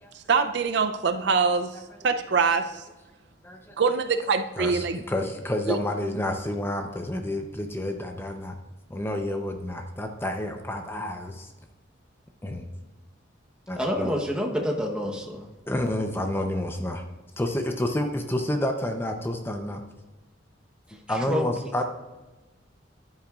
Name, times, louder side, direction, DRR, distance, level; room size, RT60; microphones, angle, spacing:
voice 1, 0.1-2.8 3.8-5.0 5.7-5.8, right 5 dB, 60° right, 0.4 m, -24 dB
voice 2, 3.4-3.8 4.6-8.6 8.9-11.5 12.4-12.7 13.7-14.1 15.7-17.0 17.4-19.8 21.1-21.8, left 1 dB, 10° left, 0.6 m, -29 dB
voice 3, 13.8-15.5 20.9-21.5, equal, 5° right, 0.9 m, -28 dB
10.5 x 8.4 x 2.4 m
head